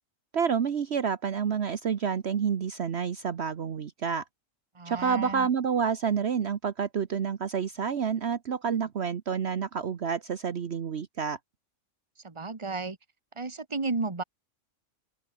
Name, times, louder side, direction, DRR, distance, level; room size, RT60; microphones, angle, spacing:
voice 1, 0.3-4.2 4.9-11.4, right 7 dB, 60° right, 1.2 m, -29 dB
voice 2, 4.7-5.5 12.2-13.0 13.4-14.2, right 3 dB, 25° right, 1.6 m, -33 dB
open air
omnidirectional pair, 1.3 m